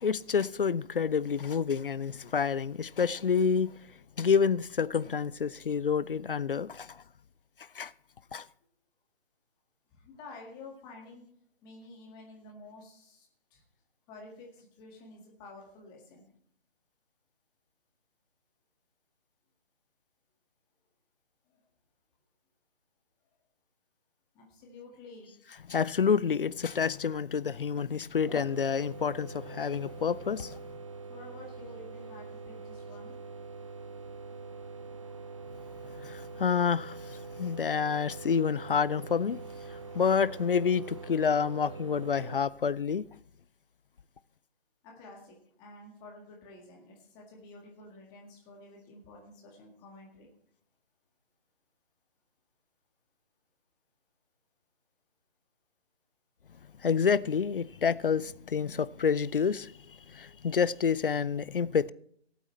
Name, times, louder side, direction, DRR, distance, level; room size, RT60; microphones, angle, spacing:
voice 1, 0.0-3.7 4.2-7.0 7.7-7.9 8.3-8.5 25.7-30.6 36.0-43.1 56.8-61.9, left 6 dB, 55° left, 0.5 m, -28 dB
voice 2, 9.9-11.3 11.6-13.6 14.1-16.3 21.5-21.6 24.3-25.3 31.1-33.2 44.8-50.3, left 2 dB, 10° left, 1.8 m, -50 dB
sound 1, 28.2-42.4, right 4 dB, 30° right, 0.5 m, -44 dB
18.5 x 8.1 x 3.2 m
figure-of-eight pair, 145°, 33 cm